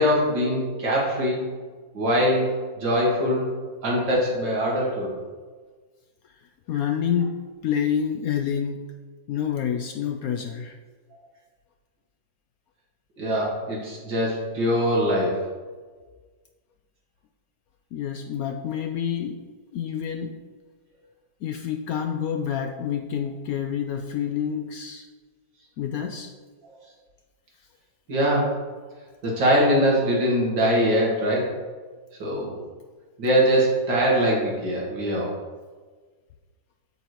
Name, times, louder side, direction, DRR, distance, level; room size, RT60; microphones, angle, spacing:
voice 1, 0.0-1.4 1.9-2.5 2.8-3.5 3.8-5.1 13.2-15.3 28.1-28.5 29.2-31.5 32.2-32.5 33.2-35.3, equal, 80° right, -4 dB, 2.8 m, -22 dB
voice 2, 6.7-7.3 7.6-8.9 9.3-10.8 17.9-19.4 19.7-20.4 21.4-25.1 25.8-26.3, left 8 dB, 70° left, 5 dB, 0.9 m, -28 dB
7.7 x 4.7 x 6.5 m, 1.4 s
omnidirectional pair, 2.0 m